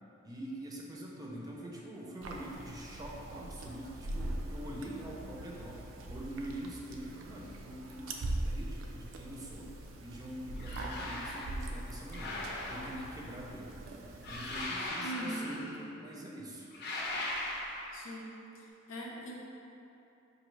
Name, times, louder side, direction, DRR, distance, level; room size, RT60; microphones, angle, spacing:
voice 1, 0.2-9.7 10.0-13.8 14.3-16.7, right 1 dB, 20° right, -3 dB, 0.4 m, -44 dB
sound 1, 2.2-14.7, right 1 dB, 80° right, 0.4 m, -42 dB
sound 2, 10.6-11.5 12.1-13.2 14.2-15.8 16.7-18.0, left 1 dB, 55° left, 0.7 m, -39 dB
voice 2, 15.0-15.4 17.9-18.3 18.5-19.3, right 1 dB, 90° left, -3 dB, 0.7 m, -41 dB
5.2 x 2.6 x 3.1 m, 3.0 s
head